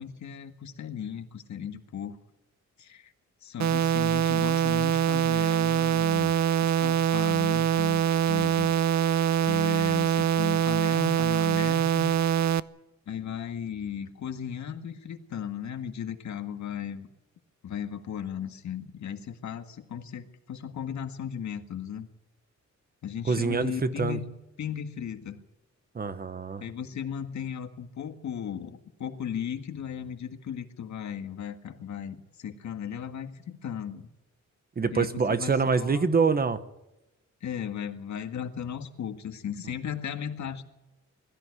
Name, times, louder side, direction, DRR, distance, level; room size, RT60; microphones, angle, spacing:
voice 1, 0.0-2.2 2.8-3.1 3.4-8.8 9.5-12.1 13.1-17.1 17.6-22.1 23.0-24.3 24.6-25.4 26.6-34.1 34.9-36.2 37.4-40.6, left 8 dB, 75° left, 8 dB, 1.8 m, -36 dB
sound 1, 3.6-12.6, right 9 dB, 70° right, 0.7 m, -24 dB
voice 2, 23.3-24.2 25.9-26.6 34.8-36.6, right 5 dB, 30° right, 12 dB, 1.1 m, -25 dB
22.0 x 14.0 x 9.6 m, 0.96 s
wide cardioid pair, 175°, 29 cm